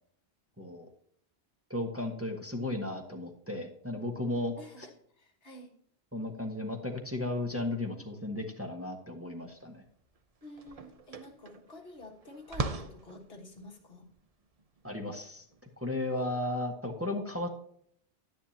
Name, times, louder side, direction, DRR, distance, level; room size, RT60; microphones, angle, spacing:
voice 1, 0.6-0.9 1.7-4.9 6.1-9.8 14.8-15.4 15.8-17.5, left 1 dB, 10° right, 2 dB, 1.4 m, -35 dB
voice 2, 4.6-5.7 10.4-14.1 16.1-16.3, left 2 dB, 60° left, 3 dB, 1.8 m, -49 dB
sound 1, 9.6-9.7 10.0-16.5, right 3 dB, 35° right, 0.7 m, -41 dB
11.0 x 10.5 x 2.8 m, 0.64 s
omnidirectional pair, 1.2 m